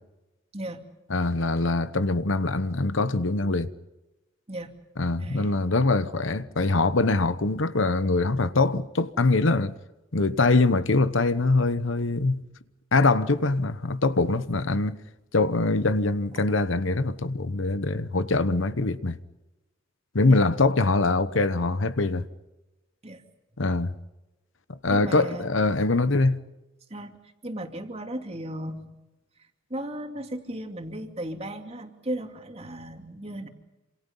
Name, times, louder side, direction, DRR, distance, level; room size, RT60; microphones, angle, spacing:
voice 1, 0.5-0.8 4.5-4.7 5.2-5.6 20.3-20.4 23.0-23.2 24.9-25.5 26.9-27.2 27.4-28.9 29.7-33.5, right 1 dB, 30° right, 2.7 m, -35 dB
voice 2, 1.1-3.7 5.0-9.7 10.1-12.4 12.9-15.0 15.3-19.2 20.1-22.3 23.6-23.9 24.8-26.4, left 3 dB, 70° left, 1.0 m, -23 dB
28.0 x 27.0 x 5.5 m
head